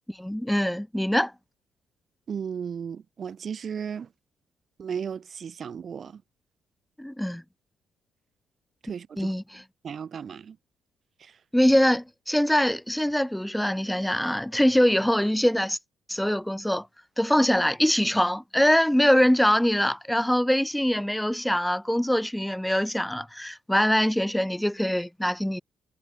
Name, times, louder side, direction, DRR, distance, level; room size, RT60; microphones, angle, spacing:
voice 1, 0.2-1.3 7.0-7.4 9.2-9.6 11.5-15.8 16.1-16.9 17.2-25.6, equal, 5° left, 3.1 m, -23 dB
voice 2, 2.3-4.1 4.8-6.2 8.8-9.3 9.8-10.6 11.2-11.4, right 7 dB, 50° right, 2.9 m, -35 dB
cardioid pair, 90°, 0 cm